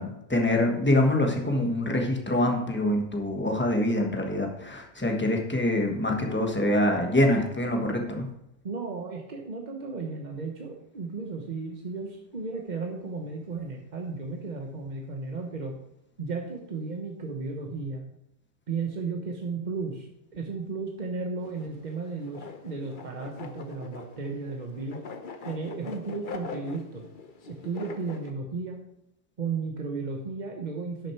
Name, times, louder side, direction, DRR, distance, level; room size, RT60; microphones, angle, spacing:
voice 1, 0.0-8.2, left 1 dB, 10° left, 2 dB, 1.0 m, -25 dB
voice 2, 8.6-15.7 16.2-18.0 18.7-25.0 25.4-27.0 27.5-28.8 29.4-31.1, right 4 dB, 40° right, 2 dB, 0.7 m, -34 dB
sound 1, 21.4-28.3, left 4 dB, 45° left, 0.6 m, -42 dB
11.5 x 6.4 x 4.4 m, 0.82 s
omnidirectional pair, 1.9 m